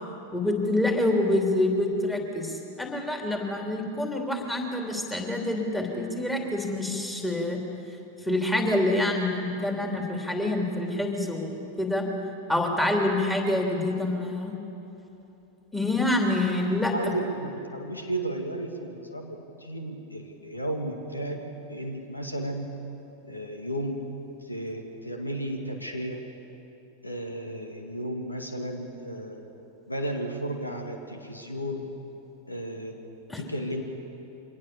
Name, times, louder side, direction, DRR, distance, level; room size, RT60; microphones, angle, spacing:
voice 1, 0.3-7.6 8.2-12.1 12.5-14.5 15.7-16.9 33.3-33.4, left 1 dB, 5° left, 1 dB, 3.1 m, -26 dB
voice 2, 16.9-21.4 21.7-22.7 23.2-24.0 24.4-26.2 27.0-29.4 29.9-31.9 32.5-33.0 33.4-33.8, right 1 dB, 85° left, 3 dB, 2.1 m, -33 dB
24.5 x 19.0 x 6.9 m, 3.0 s
figure-of-eight pair, 90°, 0 cm